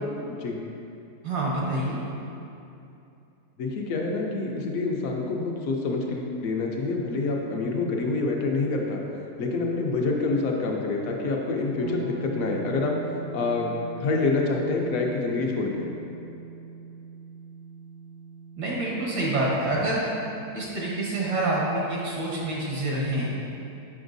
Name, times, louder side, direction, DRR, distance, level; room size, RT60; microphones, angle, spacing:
voice 1, 0.2-0.6 3.6-9.0 9.4-13.0 13.3-13.7 14.0-15.9, left 3 dB, 65° left, 0 dB, 1.0 m, -27 dB
voice 2, 1.2-2.0 18.6-20.0 20.5-23.3, right 2 dB, 80° right, -5 dB, 1.6 m, -27 dB
sound 1, 11.8-21.6, right 5 dB, 60° right, 0.5 m, -41 dB
7.0 x 5.3 x 2.6 m, 2.7 s
omnidirectional pair, 1.7 m